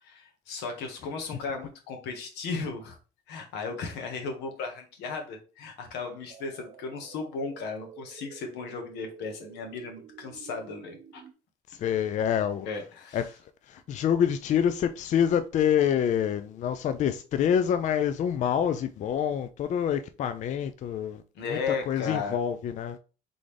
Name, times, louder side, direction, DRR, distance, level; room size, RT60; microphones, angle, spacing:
voice 1, 0.0-3.0 3.3-11.2 12.6-13.2 21.3-22.4, left 4 dB, 85° left, 1.3 m, -35 dB
sound 1, 6.3-11.3, right 9 dB, 45° right, 0.5 m, -50 dB
voice 2, 11.7-12.7 13.1-13.2 13.7-21.2 21.5-23.0, left 9 dB, 45° left, 0.4 m, -26 dB
3.9 x 3.7 x 3.2 m
cardioid pair, 110°, 17 cm